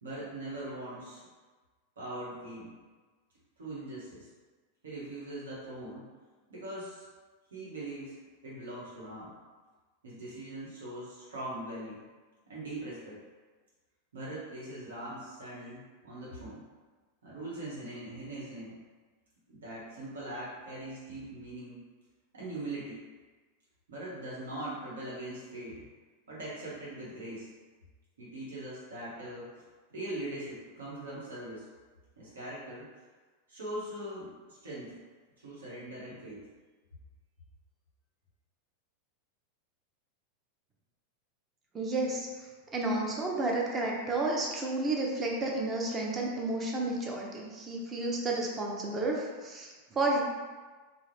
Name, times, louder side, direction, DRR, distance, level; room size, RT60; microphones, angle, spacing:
voice 1, 0.0-1.2 2.0-2.7 3.6-4.3 4.8-6.0 6.5-7.0 7.5-8.1 8.4-9.3 10.0-12.0 12.5-13.3 14.1-16.6 17.2-18.8 19.5-21.8 22.3-23.0 23.9-25.8 26.3-27.5 28.2-29.5 29.9-31.6 32.2-32.9 33.5-34.9 35.4-36.4, right 1 dB, 80° right, -8 dB, 0.9 m, -41 dB
voice 2, 41.7-50.2, right 2 dB, 25° right, -2 dB, 0.6 m, -31 dB
2.4 x 2.0 x 3.2 m, 1.3 s
hypercardioid pair, 95°, 0 cm